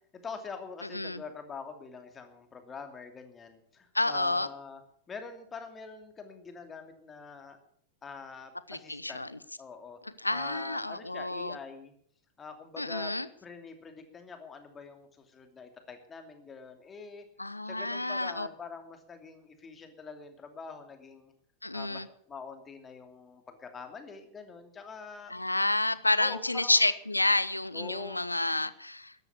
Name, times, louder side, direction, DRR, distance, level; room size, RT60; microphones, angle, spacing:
voice 1, 0.1-4.8 5.1-7.6 8.0-9.3 9.6-10.0 10.3-11.9 12.4-13.1 13.4-17.2 17.7-21.3 21.7-25.4 26.2-26.9 27.7-28.2, left 5 dB, 20° left, 6 dB, 2.7 m, -45 dB
voice 2, 3.9-4.5 8.7-9.4 10.2-11.6 12.8-13.3 17.4-18.5 21.6-22.1 25.3-29.1, left 2 dB, 85° left, 16 dB, 0.8 m, -29 dB
13.5 x 11.0 x 8.4 m, 0.62 s
figure-of-eight pair, 90°, 0 cm